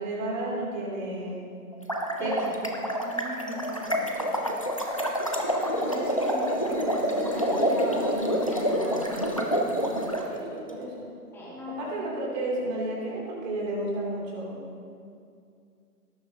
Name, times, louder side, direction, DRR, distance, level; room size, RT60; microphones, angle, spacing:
voice 1, 0.0-1.4 2.2-2.6 10.3-11.1 11.8-14.6, right 1 dB, 30° right, -4 dB, 2.9 m, -32 dB
sound 1, 1.7-10.2, equal, 25° left, 0.4 m, -27 dB
voice 2, 2.2-2.6 2.9-4.3 5.6-9.6 11.3-12.0, equal, 5° left, -7 dB, 1.7 m, -36 dB
18.0 x 9.8 x 2.8 m, 2.4 s
figure-of-eight pair, 145°, 47 cm